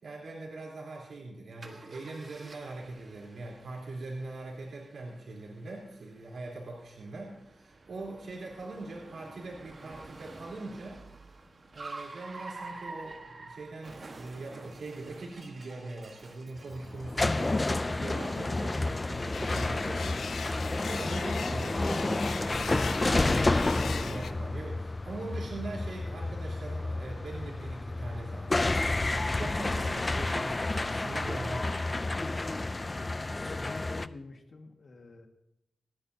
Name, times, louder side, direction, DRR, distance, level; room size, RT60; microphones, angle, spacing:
voice 1, 0.0-11.0 11.7-29.0 29.3-32.5, right 2 dB, 80° right, -4 dB, 3.6 m, -42 dB
Car, 1.6-18.5, right 3 dB, 40° right, 1.4 m, -49 dB
sound 1, 16.6-34.1, left 2 dB, 25° left, 0.3 m, -30 dB
sound 2, 19.3-24.3, left 5 dB, 80° left, 0.6 m, -40 dB
voice 2, 33.3-35.3, left 3 dB, 50° left, 4 dB, 1.7 m, -47 dB
27.5 x 10.0 x 2.8 m, 0.86 s
wide cardioid pair, 145°, 0 cm